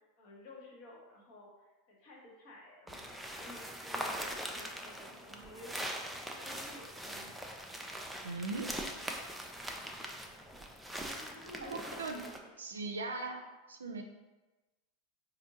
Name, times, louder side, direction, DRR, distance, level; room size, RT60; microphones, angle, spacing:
voice 1, 0.2-3.0 3.4-6.0 6.4-7.4 11.1-12.6, left 1 dB, 50° left, -2 dB, 0.9 m, -52 dB
sound 1, 2.9-12.4, right 1 dB, 5° right, 0.4 m, -42 dB
voice 2, 8.2-8.7 11.6-12.2 12.6-14.0, right 3 dB, 75° right, 4 dB, 0.4 m, -39 dB
4.3 x 2.6 x 2.7 m, 1.2 s
figure-of-eight pair, 85°, 0 cm